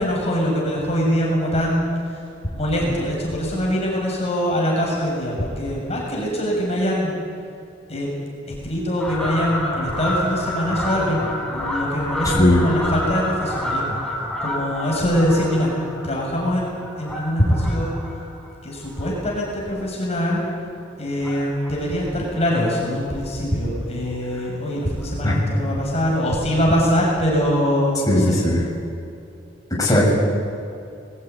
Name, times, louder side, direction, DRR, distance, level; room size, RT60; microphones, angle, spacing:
voice 1, 0.0-2.0 2.5-7.2 7.9-8.1 8.5-14.0 14.4-15.7 16.0-17.9 18.6-20.4 21.0-28.4, equal, 35° left, -3 dB, 7.1 m, -23 dB
Fowl, 9.0-19.8 20.2-20.5 21.2-21.8 22.1-22.2 22.4-22.5 22.8-22.9 23.2-23.4 24.4-24.5 25.0-25.1, left 1 dB, 5° left, 4.9 m, -29 dB
voice 2, 28.1-28.6 29.8-30.1, left 1 dB, 20° left, -5 dB, 7.4 m, -17 dB
22.5 x 19.5 x 9.7 m, 2.6 s
head